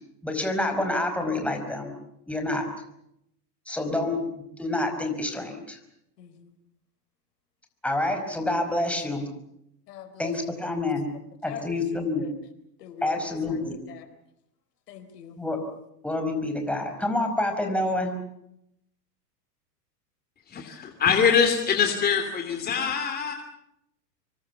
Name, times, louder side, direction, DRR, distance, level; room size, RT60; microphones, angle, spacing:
voice 1, 0.2-1.9 2.3-2.7 3.7-5.8 7.8-9.2 10.2-11.1 11.4-12.2 13.0-13.8 15.4-15.6 16.0-18.1, left 2 dB, ahead, 4 dB, 5.1 m, -28 dB
voice 2, 6.2-6.5 9.9-10.3 10.6-10.9 11.4-12.4 12.8-14.1 14.9-15.4, left 8 dB, 70° left, 10 dB, 4.0 m, -43 dB
voice 3, 20.5-23.3, left 7 dB, 20° left, 5 dB, 2.9 m, -23 dB
26.0 x 24.0 x 7.2 m, 0.78 s
hypercardioid pair, 125°, 49 cm